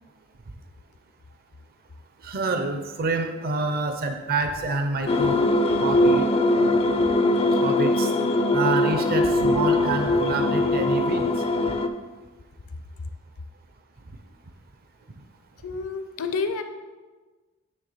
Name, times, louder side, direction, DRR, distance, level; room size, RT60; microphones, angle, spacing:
voice 1, 2.2-5.4 5.7-6.3 7.5-8.1 8.5-11.4, right 3 dB, 45° right, 6 dB, 0.5 m, -27 dB
sound 1, 5.1-11.9, left 2 dB, 25° left, 0.4 m, -21 dB
voice 2, 15.6-16.6, left 4 dB, 70° left, 8 dB, 0.6 m, -29 dB
9.7 x 3.3 x 5.5 m, 1.3 s
head